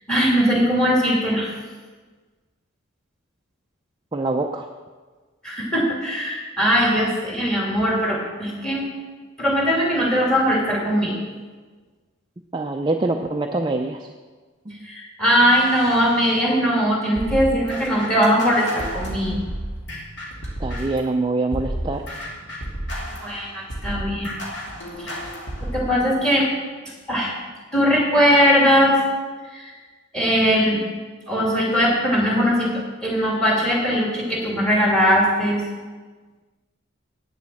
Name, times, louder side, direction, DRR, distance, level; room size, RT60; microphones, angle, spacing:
voice 1, 0.1-1.5 5.4-8.9 9.4-11.2 14.8-19.4 23.2-24.3 25.0-25.2 25.6-26.5 27.1-27.3 27.7-29.0 29.5-29.7 30.1-30.8 31.3-35.6, equal, 5° left, -3 dB, 2.5 m, -20 dB
voice 2, 4.1-4.7 12.5-14.1 14.7-14.8 20.6-22.0, right 2 dB, 20° right, 3 dB, 0.4 m, -24 dB
sound 1, 17.2-21.1 21.5-25.9, equal, 55° left, 2.4 m, -31 dB
9.1 x 7.3 x 7.6 m, 1.4 s
head